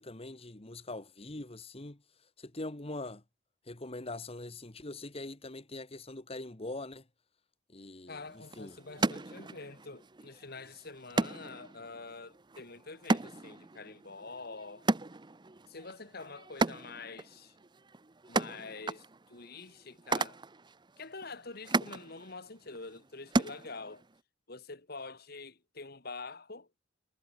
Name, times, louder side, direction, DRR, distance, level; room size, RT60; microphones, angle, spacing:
voice 1, 0.0-2.0 2.4-3.2 3.7-7.0 7.7-8.8, left 2 dB, 30° left, 1.5 m, -42 dB
voice 2, 8.1-14.8 15.7-17.6 18.3-20.4 21.0-24.1 24.5-26.7, left 3 dB, 55° left, 2.3 m, -46 dB
sound 1, 8.1-24.2, right 3 dB, 25° right, 0.7 m, -36 dB
head